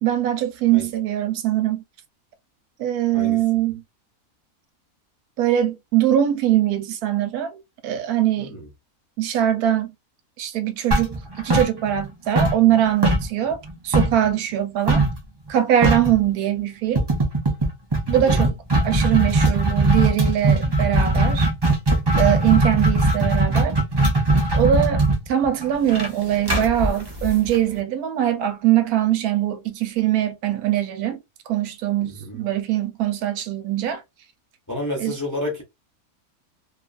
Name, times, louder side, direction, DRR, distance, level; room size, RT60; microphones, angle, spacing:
voice 1, 0.0-1.8 2.8-3.8 5.4-8.5 9.2-9.9 10.4-15.0 15.5-17.1 18.1-18.5 18.8-21.5 22.2-23.8 24.5-31.2 31.5-34.0 35.0-35.1, right 11 dB, 90° right, 1.1 m, -22 dB
voice 2, 3.1-3.4 8.4-8.7 18.1-18.4 32.0-32.5 34.7-35.6, left 1 dB, 20° left, 0.5 m, -30 dB
sound 1, 10.9-12.1 12.4-14.3 14.9-15.2 15.5-15.6 15.8-16.2 17.0-27.8, right 2 dB, 40° right, 0.3 m, -20 dB
2.7 x 2.4 x 2.3 m
omnidirectional pair, 1.5 m